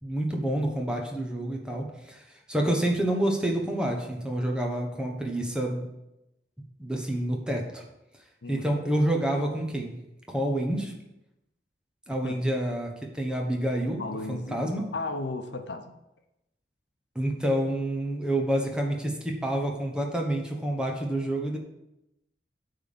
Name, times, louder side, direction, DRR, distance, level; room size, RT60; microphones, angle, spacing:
voice 1, 0.0-2.2 2.5-5.9 6.8-7.8 8.5-9.9 10.3-10.9 12.1-14.0 14.3-14.8 17.1-21.6, right 1 dB, 5° right, 1 dB, 1.1 m, -28 dB
voice 2, 8.4-8.9 12.2-12.4 14.0-15.9, left 3 dB, 80° left, 7 dB, 0.8 m, -35 dB
9.1 x 3.7 x 6.8 m, 0.89 s
head